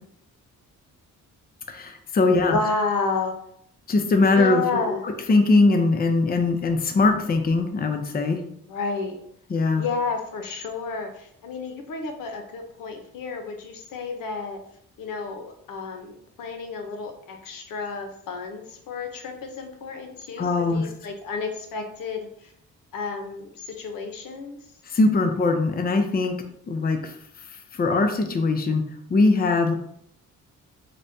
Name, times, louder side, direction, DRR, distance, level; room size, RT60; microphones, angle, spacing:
voice 1, 1.7-2.6 3.9-4.8 5.3-8.4 9.5-9.8 20.4-20.8 24.9-26.4 26.7-27.1 27.7-28.8 29.1-29.7, left 3 dB, 30° left, 6 dB, 0.5 m, -21 dB
voice 2, 2.5-3.4 4.3-5.0 8.7-9.2 9.8-14.6 15.0-16.1 16.4-22.5 22.9-24.6, left 4 dB, 75° left, 4 dB, 0.7 m, -31 dB
5.0 x 2.2 x 2.6 m, 0.68 s
cardioid pair, 60°, 33 cm